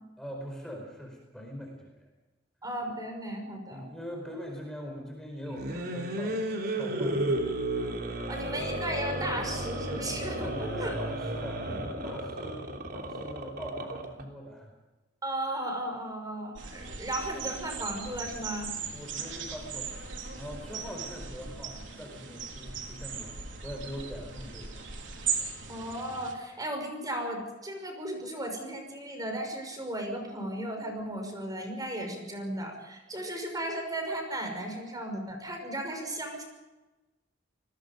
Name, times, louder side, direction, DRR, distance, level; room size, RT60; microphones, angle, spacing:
voice 1, 0.2-2.1 3.7-7.2 10.4-14.7 18.9-20.1 20.3-23.3 23.6-24.8, equal, 5° left, 0 dB, 4.7 m, -42 dB
voice 2, 2.6-3.8 8.3-10.9 15.2-18.7 25.7-36.4, right 1 dB, 20° right, 3 dB, 5.9 m, -35 dB
sound 1, 5.5-14.2, right 1 dB, 55° right, 3.4 m, -33 dB
sound 2, 16.6-26.3, right 5 dB, 80° right, 3.7 m, -38 dB
30.0 x 20.5 x 5.3 m, 1.1 s
head